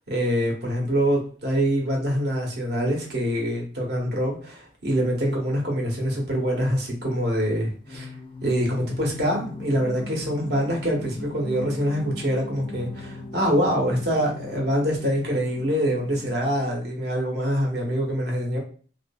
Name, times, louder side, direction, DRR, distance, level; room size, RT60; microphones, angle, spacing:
voice 1, 0.1-8.1 8.4-18.6, equal, 65° right, -1 dB, 0.9 m, -25 dB
Singing, 7.8-16.8, left 3 dB, 30° left, 0.3 m, -39 dB
2.7 x 2.4 x 2.2 m, 0.42 s
head